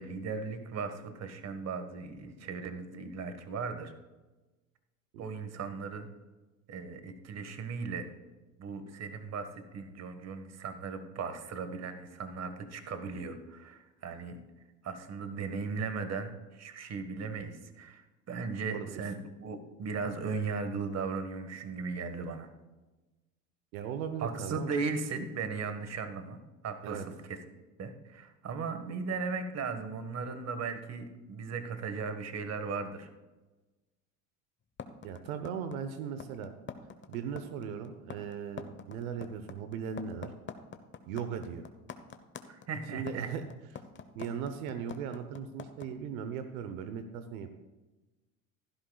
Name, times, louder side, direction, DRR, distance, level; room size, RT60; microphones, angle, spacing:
voice 1, 0.0-3.9 5.2-6.1 6.7-8.1 8.6-14.4 14.8-18.0 18.3-22.5 24.2-27.4 27.8-33.1 42.5-43.3, right 5 dB, 40° right, 8 dB, 1.6 m, -37 dB
voice 2, 23.7-24.7 26.8-27.1 35.0-36.5 37.1-40.3 41.1-41.7 42.9-43.4 44.1-47.5, right 7 dB, 80° right, 8 dB, 1.0 m, -38 dB
sound 1, 34.8-45.8, left 6 dB, 30° left, 1.0 m, -44 dB
16.0 x 12.0 x 2.4 m, 1.1 s
supercardioid pair, 90°, 41 cm